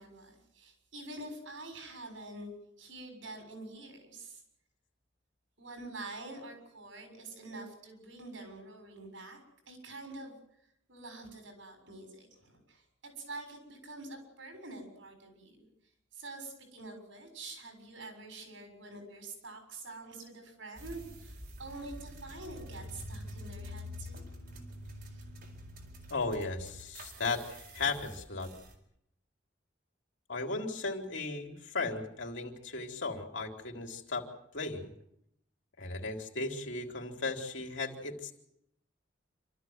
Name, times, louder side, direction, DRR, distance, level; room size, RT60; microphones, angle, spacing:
voice 1, 0.0-2.5 2.8-4.4 5.6-9.4 9.7-10.3 10.9-15.7 16.1-24.7 25.0-25.2, right 2 dB, 80° right, 5 dB, 6.9 m, -46 dB
sound 1, 20.8-28.7, equal, 55° right, 4.2 m, -47 dB
voice 2, 26.1-28.5 30.3-34.3 34.5-34.9 35.8-38.3, left 3 dB, 70° left, 2 dB, 3.4 m, -36 dB
27.0 x 13.5 x 9.5 m, 0.76 s
head